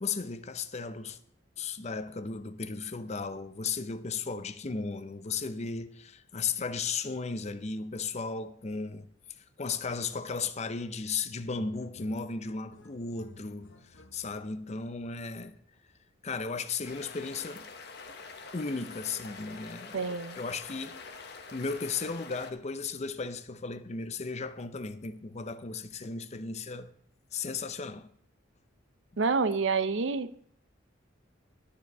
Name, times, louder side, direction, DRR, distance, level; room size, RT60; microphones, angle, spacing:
voice 1, 0.0-1.2 1.6-9.1 9.6-13.7 14.1-15.6 16.2-17.7 18.5-21.0 21.5-26.9 27.3-28.1, left 4 dB, 35° left, 0.6 m, -35 dB
sound 1, 10.9-11.2 11.5-14.6, left 2 dB, 80° left, 1.1 m, -54 dB
sound 2, 16.8-22.5, left 4 dB, 60° left, 1.1 m, -46 dB
voice 2, 19.9-20.4 29.2-30.5, right 4 dB, 70° right, 0.6 m, -28 dB
11.5 x 5.1 x 6.7 m
head